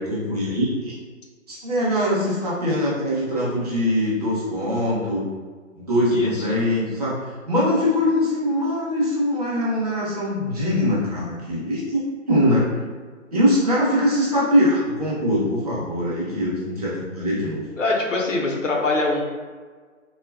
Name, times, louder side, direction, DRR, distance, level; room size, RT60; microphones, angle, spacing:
voice 1, 0.1-1.0 1.5-5.2 5.8-12.0 12.3-12.8 13.3-17.6, equal, 30° right, -7 dB, 0.6 m, -22 dB
voice 2, 6.1-6.6 17.8-19.2, left 2 dB, 70° left, -1 dB, 0.6 m, -23 dB
2.5 x 2.2 x 2.2 m, 1.5 s
figure-of-eight pair, 140°, 40 cm